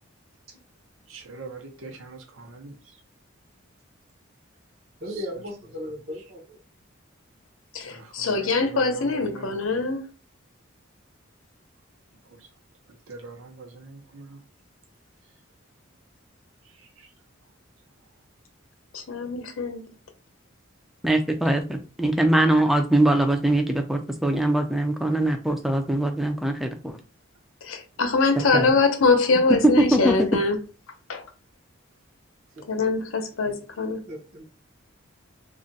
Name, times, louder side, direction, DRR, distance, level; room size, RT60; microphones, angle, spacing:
voice 1, 1.1-3.0 5.1-5.2 7.9-9.8 12.3-12.5 13.1-14.4 16.6-17.1, right 3 dB, 80° right, 0.7 m, -42 dB
voice 2, 5.0-6.6 28.0-28.5 32.6-32.7 33.4-33.6 34.1-34.4, equal, 50° right, 0.7 m, -37 dB
voice 3, 7.7-10.1 18.9-19.9 27.6-30.6 31.1-31.2 32.7-34.0, left 3 dB, 80° left, 0.7 m, -23 dB
voice 4, 21.0-27.0 28.4-28.7 29.6-30.2, right 1 dB, ahead, 0.4 m, -22 dB
2.4 x 2.1 x 3.9 m
head